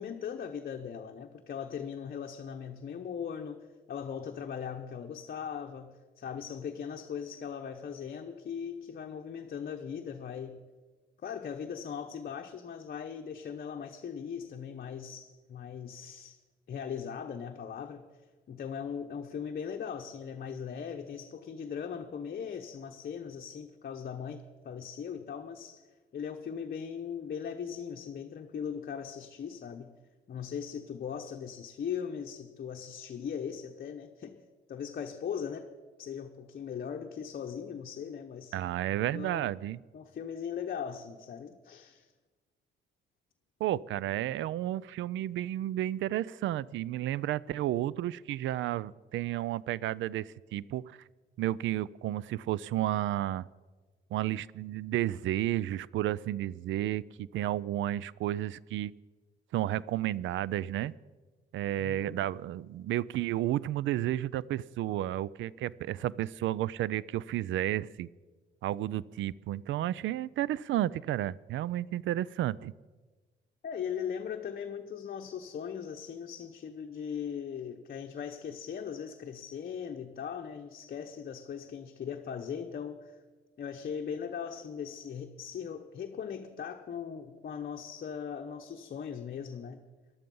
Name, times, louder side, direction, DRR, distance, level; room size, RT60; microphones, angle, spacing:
voice 1, 0.0-10.6 11.2-16.4 16.7-18.0 18.5-25.9 26.1-30.0 30.3-34.4 34.7-35.7 36.0-38.6 39.1-39.5 39.9-42.1 61.8-62.3 73.6-83.2 83.6-89.8, left 7 dB, 50° left, 4 dB, 0.9 m, -39 dB
voice 2, 38.5-39.8 43.6-51.0 51.4-53.5 54.1-58.9 59.5-60.9 61.5-68.1 68.6-72.7, right 13 dB, 75° right, 22 dB, 0.4 m, -32 dB
14.5 x 11.5 x 5.4 m, 1.3 s
cardioid pair, 90°, 20 cm